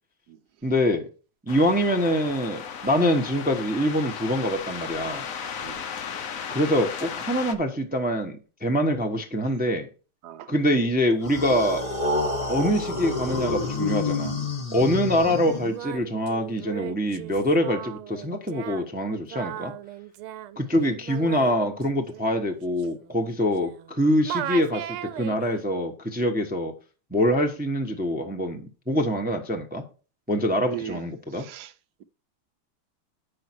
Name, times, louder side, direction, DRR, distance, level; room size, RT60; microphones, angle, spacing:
voice 1, 0.6-1.1 1.4-5.2 6.5-9.9 10.5-11.9 12.5-14.4 14.7-19.7 20.6-26.7 27.1-29.9 30.3-31.5, equal, 5° right, 0.8 m, -25 dB
sound 1, 1.5-7.6, left 7 dB, 55° left, 0.9 m, -35 dB
sound 2, 11.2-16.0, left 3 dB, 20° left, 1.0 m, -28 dB
Singing, 14.9-23.9 24.2-25.7, right 12 dB, 85° right, 1.5 m, -37 dB
voice 2, 30.5-31.0 31.4-31.7, right 11 dB, 65° right, 1.1 m, -38 dB
9.4 x 6.5 x 4.6 m
omnidirectional pair, 2.3 m